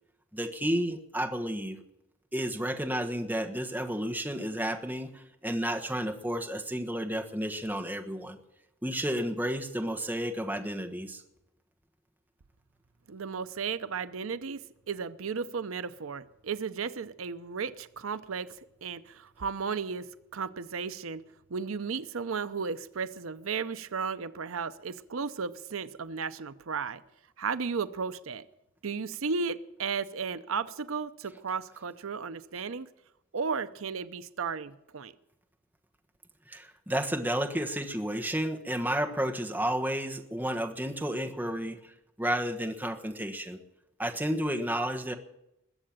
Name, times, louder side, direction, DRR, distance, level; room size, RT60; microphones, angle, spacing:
voice 1, 0.3-1.8 2.3-8.4 8.8-11.2 36.5-43.6 44.0-45.1, equal, 10° right, 4 dB, 1.3 m, -32 dB
voice 2, 13.1-18.5 18.8-21.2 21.5-27.0 27.4-28.5 28.8-32.9 33.3-35.1, right 5 dB, 80° right, 13 dB, 0.7 m, -34 dB
21.0 x 7.7 x 8.8 m, 0.86 s
head